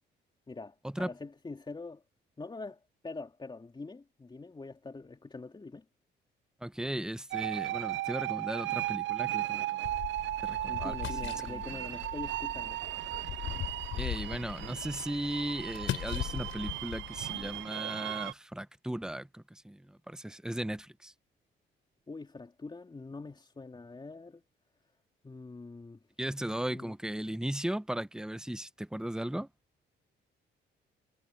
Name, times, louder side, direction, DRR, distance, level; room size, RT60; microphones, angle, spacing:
voice 1, 0.5-2.0 2.4-5.8 10.7-12.8 22.1-24.4 25.2-26.0 26.7-26.9, left 3 dB, 25° left, 3.5 m, -44 dB
voice 2, 6.6-9.9 10.4-11.6 13.9-21.1 26.2-29.5, right 1 dB, 5° right, 1.0 m, -37 dB
sound 1, 7.3-18.3, right 15 dB, 70° right, 0.4 m, -36 dB
sound 2, 9.8-17.7, left 12 dB, 80° left, 6.8 m, -40 dB
cardioid pair, 90°, 20 cm